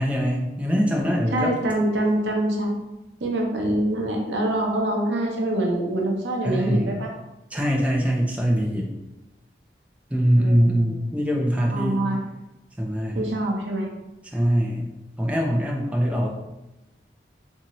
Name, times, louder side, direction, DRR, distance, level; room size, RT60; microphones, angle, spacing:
voice 1, 0.0-1.5 6.4-6.9 7.5-8.9 10.1-12.0 12.8-13.3 14.3-14.8 15.2-16.3, equal, 10° right, -1 dB, 0.3 m, -23 dB
voice 2, 1.3-2.7 3.2-7.1 10.4-11.0 11.7-12.2 13.1-13.9, right 1 dB, 90° right, 1 dB, 0.6 m, -25 dB
2.7 x 2.6 x 2.9 m, 0.97 s
head